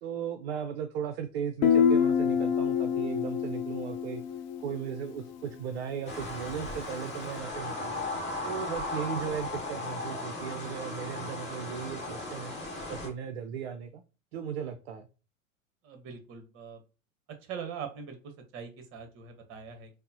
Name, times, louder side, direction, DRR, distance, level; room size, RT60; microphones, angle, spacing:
voice 1, 0.0-4.2 4.6-8.1 8.4-12.5 12.9-14.0 14.3-15.1, right 8 dB, 50° right, 9 dB, 0.5 m, -36 dB
Guitar, 1.6-5.3, left 7 dB, 35° left, 0.4 m, -27 dB
sound 1, 6.1-13.1, left 2 dB, 15° left, 1.3 m, -36 dB
voice 2, 15.8-16.8 17.4-19.9, right 6 dB, 30° right, 6 dB, 0.9 m, -42 dB
5.3 x 2.0 x 2.6 m, 0.34 s
figure-of-eight pair, 95°, 41 cm